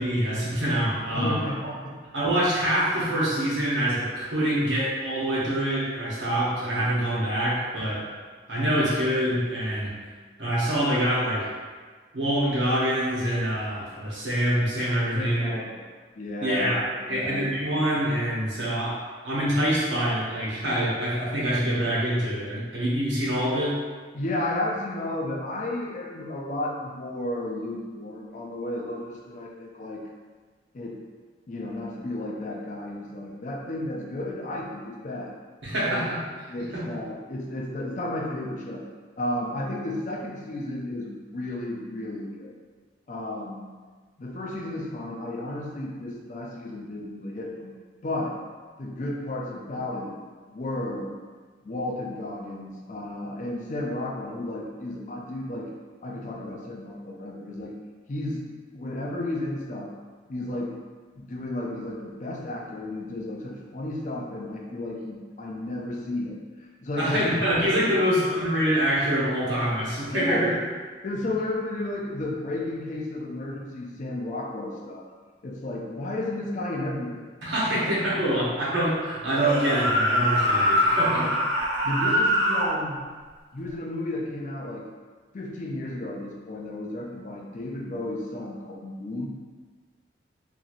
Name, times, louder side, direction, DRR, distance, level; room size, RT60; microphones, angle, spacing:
voice 1, 0.0-1.5 2.1-8.1 8.5-9.9 10.4-11.5 12.1-15.5 16.4-23.8 35.6-36.2 36.7-36.8 67.0-70.5 77.4-81.2, equal, 90° right, -7 dB, 1.0 m, -25 dB
voice 2, 1.1-1.9 15.1-15.9 16.2-16.7 17.0-17.6 24.1-30.0 30.7-31.0 31.5-35.3 35.8-36.0 36.5-38.9 39.2-42.5 43.1-43.7 44.2-48.4 48.8-50.1 50.5-51.1 51.6-55.7 56.0-57.7 58.1-58.4 58.7-59.9 60.3-60.8 61.2-67.6 67.9-68.3 70.1-70.6 71.0-75.1 75.4-77.2 77.7-78.0 78.4-78.5 81.1-81.3 81.8-83.0 83.5-84.9 85.3-89.3, left 1 dB, 45° left, -1 dB, 0.4 m, -33 dB
sound 1, 79.3-82.7, equal, 75° right, 0.5 m, -23 dB
2.8 x 2.7 x 2.5 m, 1.5 s
head